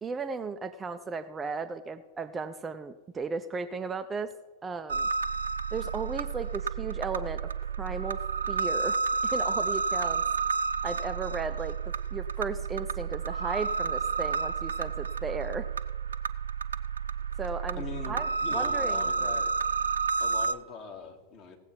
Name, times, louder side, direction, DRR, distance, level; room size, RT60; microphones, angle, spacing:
voice 1, 0.0-4.3 4.6-5.1 5.7-7.5 7.8-8.2 8.5-10.2 10.8-11.8 12.1-15.7 17.4-18.3 18.5-19.3, right 4 dB, 15° right, 9 dB, 0.5 m, -35 dB
sound 1, 4.9-20.5, right 5 dB, 70° right, 0.4 m, -30 dB
voice 2, 17.7-19.5 20.2-21.6, left 5 dB, 40° left, 2 dB, 1.8 m, -42 dB
17.5 x 7.9 x 4.5 m, 1.2 s
figure-of-eight pair, 90°, 0 cm